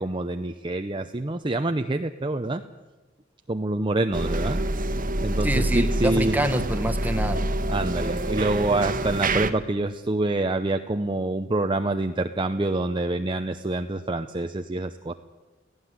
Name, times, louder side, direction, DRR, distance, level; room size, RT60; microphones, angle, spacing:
voice 1, 0.0-2.6 3.5-4.6 5.2-6.4 7.7-15.1, right 2 dB, 25° right, 6 dB, 0.7 m, -26 dB
sound 1, 4.1-9.5, right 1 dB, 45° right, 1.3 m, -26 dB
voice 2, 5.4-7.5, right 1 dB, 10° right, 8 dB, 1.4 m, -26 dB
17.5 x 15.5 x 9.6 m, 1.1 s
head